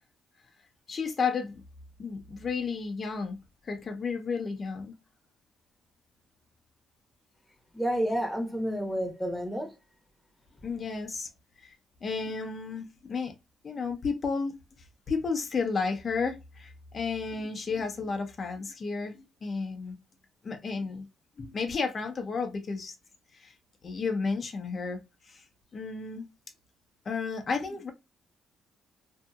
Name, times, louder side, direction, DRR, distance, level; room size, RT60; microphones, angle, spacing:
voice 1, 0.9-1.6 2.0-3.4 3.7-4.9 10.6-11.3 11.6-11.7 12.0-13.3 13.6-14.5 15.1-20.0 20.4-21.0 21.4-22.9 23.4-23.5 23.8-25.0 25.3-25.4 25.7-26.3 27.0-27.9, left 4 dB, 40° left, 0.8 m, -32 dB
voice 2, 7.7-9.7, equal, ahead, 1.1 m, -30 dB
2.7 x 2.6 x 2.3 m
cardioid pair, 90°, 0 cm